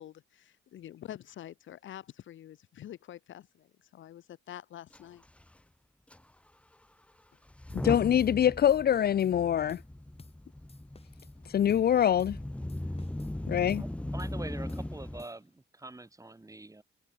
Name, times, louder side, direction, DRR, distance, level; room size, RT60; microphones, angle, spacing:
voice 1, 0.0-5.2, left 11 dB, 75° left, 1.7 m, -47 dB
Motor vehicle (road) / Engine starting / Accelerating revving vroom, 4.9-5.0 5.2-5.5 6.1-6.2 7.5-15.2, left 1 dB, 5° left, 0.9 m, -38 dB
voice 2, 7.7-9.8 11.5-12.4 13.5-13.8, left 10 dB, 50° left, 0.7 m, -24 dB
sound 1, 7.7-7.9 8.2-8.4 8.7-9.4 9.7-9.9 10.2-10.4 10.7-11.4 11.7-11.9 12.2-12.4 12.7-13.4 13.7-13.9 14.2-14.4 14.7-15.6, left 4 dB, 30° left, 3.8 m, -57 dB
voice 3, 13.5-16.8, right 2 dB, 15° right, 7.1 m, -45 dB
cardioid pair, 95°, 20 cm